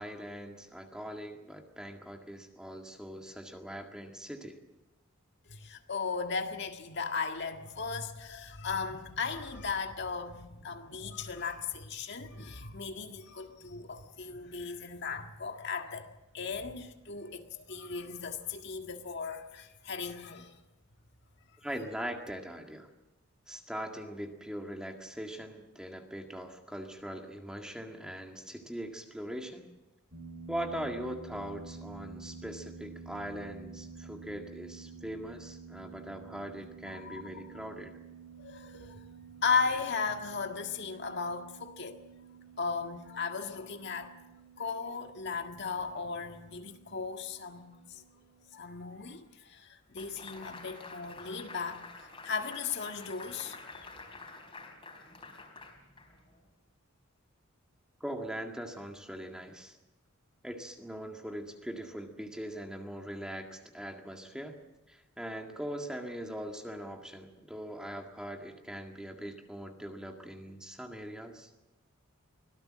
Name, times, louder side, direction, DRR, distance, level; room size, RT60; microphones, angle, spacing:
voice 1, 0.0-4.6 21.6-22.9 23.5-29.7 30.5-38.0 58.0-59.8 60.4-64.6 64.9-71.5, equal, 5° right, 1.9 m, -41 dB
voice 2, 5.5-16.1 16.3-20.6 37.0-37.4 38.4-39.0 39.4-42.0 42.6-44.1 44.6-48.0 48.5-53.9, left 5 dB, 50° left, 1.7 m, -36 dB
sound 1, 30.1-48.5, right 4 dB, 50° right, 4.4 m, -50 dB
sound 2, 50.0-56.4, left 3 dB, 20° left, 4.0 m, -49 dB
24.5 x 17.5 x 7.6 m
head